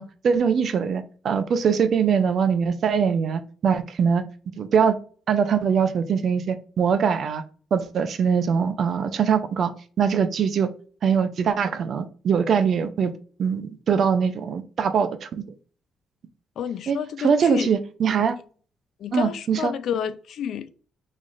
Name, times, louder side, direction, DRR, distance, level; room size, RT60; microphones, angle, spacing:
voice 1, 0.0-4.2 4.6-5.0 5.3-7.4 7.7-9.7 10.0-10.7 11.0-13.1 13.4-15.4 16.9-18.4 19.1-19.7, right 6 dB, 60° right, 0.5 m, -22 dB
voice 2, 16.6-17.7 18.2-18.3 19.0-20.7, left 8 dB, 70° left, 0.3 m, -30 dB
3.1 x 2.4 x 3.9 m
cardioid pair, 90°, 0 cm